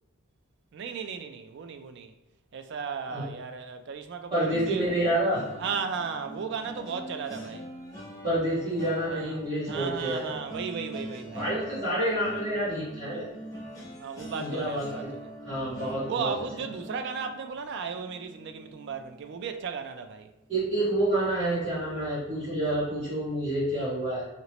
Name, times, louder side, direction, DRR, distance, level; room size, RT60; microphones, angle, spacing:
voice 1, 0.7-2.1 2.5-4.9 5.6-7.7 9.1-9.4 9.7-11.5 14.0-15.4 16.0-20.3, right 6 dB, 55° right, 0.3 m, -35 dB
voice 2, 4.3-5.4 8.2-10.3 11.3-13.2 14.3-14.8 15.4-16.3 20.5-24.3, right 1 dB, 30° right, 1.3 m, -28 dB
sound 1, 4.5-19.6 20.0-20.3 20.6-20.8, right 1 dB, 15° left, 0.6 m, -43 dB
3.0 x 2.9 x 3.0 m
head